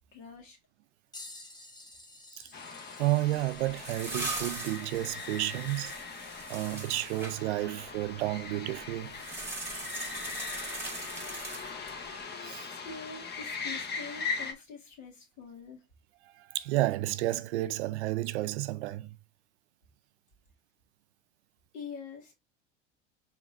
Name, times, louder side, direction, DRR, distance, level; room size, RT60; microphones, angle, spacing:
voice 1, 0.1-0.6 12.7-15.8 21.7-22.3, left 5 dB, 60° left, 2.0 m, -45 dB
sound 1, 1.1-9.3 10.1-10.2 12.5-12.6 13.6-13.8 14.8-14.9, left 2 dB, 10° left, 1.1 m, -53 dB
sound 2, 2.5-14.5, left 5 dB, 30° left, 0.8 m, -40 dB
voice 2, 3.0-5.9 6.5-9.2 9.7-10.1 12.4-12.7 16.2-19.2, right 17 dB, 75° right, 0.5 m, -31 dB
sound 3, 3.4-7.4 9.1-12.0, right 2 dB, 5° right, 1.7 m, -40 dB
4.8 x 3.5 x 2.3 m
hypercardioid pair, 75°, 34 cm